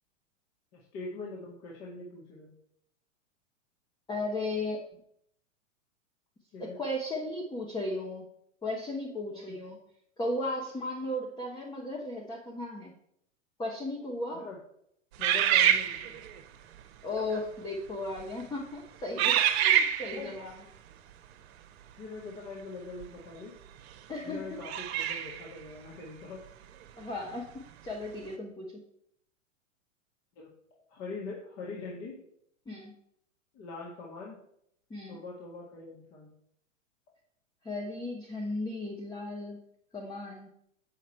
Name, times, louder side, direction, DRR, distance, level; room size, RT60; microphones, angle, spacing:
voice 1, 0.7-2.5 6.5-6.8 9.3-9.6 14.3-14.6 15.2-16.2 20.1-20.4 22.0-23.6 24.2-26.4 30.4-30.5 30.9-32.2 33.5-34.4 35.1-36.3, left 3 dB, 40° left, -4 dB, 2.1 m, -43 dB
voice 2, 4.1-4.8 6.6-8.3 8.6-9.8 10.2-12.9 13.6-14.5 17.0-20.5 24.1-24.6 27.0-28.7 32.7-32.9 34.9-35.2 37.6-39.6 39.9-40.5, left 1 dB, 10° left, -1 dB, 1.1 m, -35 dB
sound 1, 15.2-16.4 17.2-17.4 18.1-18.4 19.2-20.3 23.0-23.1 24.6-25.5, right 10 dB, 55° right, 1.1 m, -26 dB
7.4 x 6.6 x 4.5 m, 0.72 s
hypercardioid pair, 110°, 40 cm